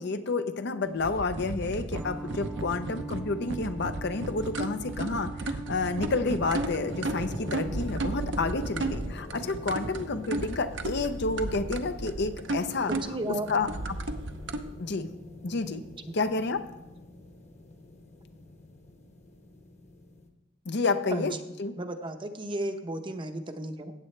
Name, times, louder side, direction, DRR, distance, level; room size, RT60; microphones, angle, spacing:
voice 1, 0.0-12.9 13.3-14.0 14.8-15.1 15.4-15.8 16.1-16.6 20.7-21.7, left 3 dB, 60° left, 9 dB, 0.7 m, -30 dB
sound 1, 1.0-14.6, right 2 dB, 65° right, 0.8 m, -34 dB
sound 2, 1.9-9.0, right 3 dB, 5° right, 0.3 m, -42 dB
sound 3, 6.4-20.3, left 2 dB, 35° left, 1.1 m, -45 dB
voice 2, 12.9-13.5 21.1-21.3 21.8-23.9, right 1 dB, 25° right, 7 dB, 0.8 m, -34 dB
15.0 x 8.5 x 3.3 m, 0.96 s
head